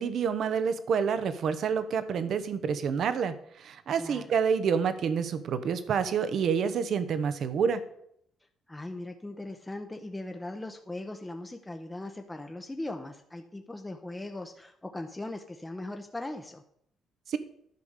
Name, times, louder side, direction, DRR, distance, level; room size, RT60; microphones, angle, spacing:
voice 1, 0.0-7.8 17.3-17.4, right 6 dB, 65° right, 12 dB, 0.9 m, -28 dB
voice 2, 8.7-16.6, left 2 dB, 15° left, 5 dB, 0.8 m, -39 dB
10.5 x 5.1 x 6.6 m, 0.71 s
cardioid pair, 90°, 0 cm